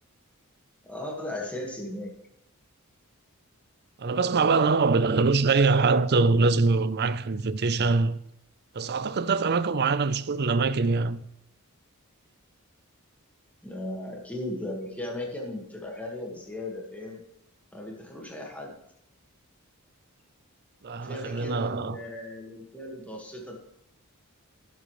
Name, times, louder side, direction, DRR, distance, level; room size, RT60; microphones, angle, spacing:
voice 1, 0.8-2.2 13.6-17.2 17.7-18.8 21.0-23.5, left 1 dB, 5° left, 1.7 m, -37 dB
voice 2, 4.0-8.2 8.7-11.2 20.8-22.0, right 4 dB, 50° right, 0.6 m, -23 dB
17.5 x 7.8 x 3.2 m
head